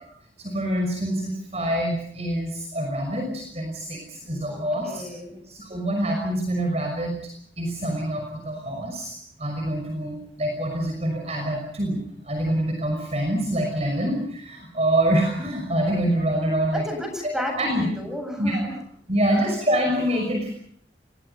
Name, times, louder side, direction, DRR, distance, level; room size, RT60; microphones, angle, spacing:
voice 1, 0.4-5.0 5.4-7.2 7.6-16.8 17.2-17.3 17.6-17.9 18.4-18.6 19.1-20.5, right 1 dB, 35° right, 2 dB, 6.0 m, -26 dB
voice 2, 4.5-5.4 16.7-18.7 19.3-19.5, left 1 dB, 5° right, 4 dB, 7.7 m, -33 dB
29.0 x 23.0 x 5.7 m, 0.66 s
head